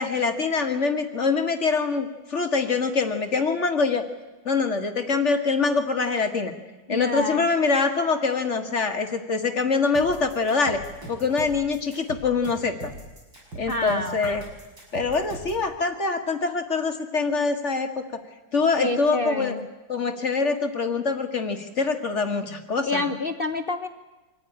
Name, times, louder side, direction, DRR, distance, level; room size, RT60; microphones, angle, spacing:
voice 1, 0.0-4.0 4.4-6.5 6.9-10.8 11.1-12.9 13.5-14.5 14.9-18.2 18.5-19.5 19.9-23.0, left 4 dB, 40° left, 7 dB, 1.7 m, -24 dB
voice 2, 6.9-7.5 13.7-14.2 18.8-19.7 22.9-23.9, left 2 dB, 55° left, 8 dB, 0.6 m, -27 dB
sound 1, 9.9-15.6, right 2 dB, 65° right, 7.1 m, -40 dB
24.5 x 14.5 x 10.0 m, 1.2 s
omnidirectional pair, 2.2 m